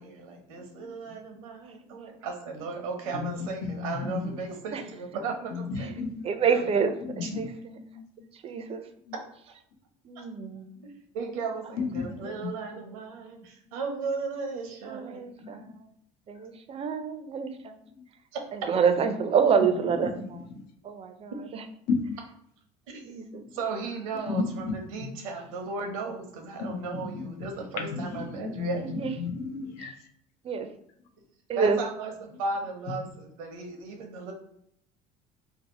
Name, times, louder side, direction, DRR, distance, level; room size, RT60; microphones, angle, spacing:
voice 1, 0.0-6.0 6.5-6.9 7.2-7.3 11.1-15.2 18.3-18.4 22.9-23.0 23.5-29.0 31.6-34.3, right 4 dB, 90° right, 3 dB, 0.7 m, -36 dB
voice 2, 3.1-4.3 5.5-6.3 7.2-7.5 7.9-8.3 9.1-9.2 11.8-12.5 15.4-15.7 20.0-20.3 20.5-20.6 21.9-22.2 23.4-23.5 24.3-24.7 25.0-25.1 26.6-27.5 27.8-29.9, left 4 dB, 65° left, 3 dB, 0.6 m, -33 dB
voice 3, 6.2-6.9 7.3-7.8 8.3-8.8 10.0-10.7 12.2-12.3 14.9-15.9 16.3-17.8 18.5-20.4 20.8-21.6 23.0-23.4 28.8-29.1 29.8-29.9 30.4-30.7 31.5-31.8, right 6 dB, 35° right, 8 dB, 0.4 m, -28 dB
2.7 x 2.0 x 4.0 m, 0.69 s
supercardioid pair, 85°, 17 cm